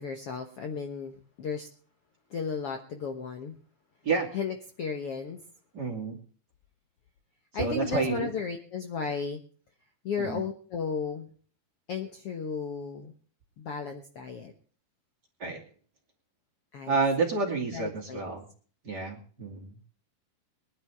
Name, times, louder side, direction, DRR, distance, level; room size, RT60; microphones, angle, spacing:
voice 1, 0.0-1.7 2.3-3.5 4.3-5.4 7.5-9.4 10.0-11.3 11.9-13.1 13.6-14.5 16.7-17.0 17.7-18.3, left 5 dB, 85° left, 4 dB, 1.2 m, -34 dB
voice 2, 5.7-6.2 7.5-8.3 10.2-10.4 15.4-15.6 16.9-18.4 18.8-19.7, right 4 dB, 30° right, 0 dB, 2.7 m, -29 dB
24.0 x 10.5 x 3.5 m, 0.43 s
omnidirectional pair, 4.6 m